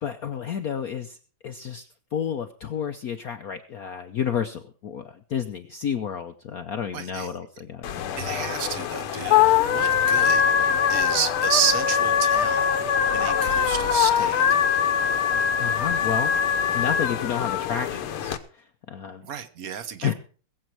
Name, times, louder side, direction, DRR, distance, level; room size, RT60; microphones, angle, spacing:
voice 1, 0.0-1.2 1.4-8.1 14.2-14.3 15.6-19.2 20.0-20.1, left 8 dB, 65° left, 8 dB, 0.9 m, -31 dB
voice 2, 6.9-7.3 8.2-14.4 19.2-20.1, right 8 dB, 50° right, 12 dB, 1.2 m, -30 dB
sound 1, 7.8-18.4, left 8 dB, 80° left, 1.8 m, -22 dB
21.0 x 7.8 x 4.6 m, 0.40 s
omnidirectional pair, 2.4 m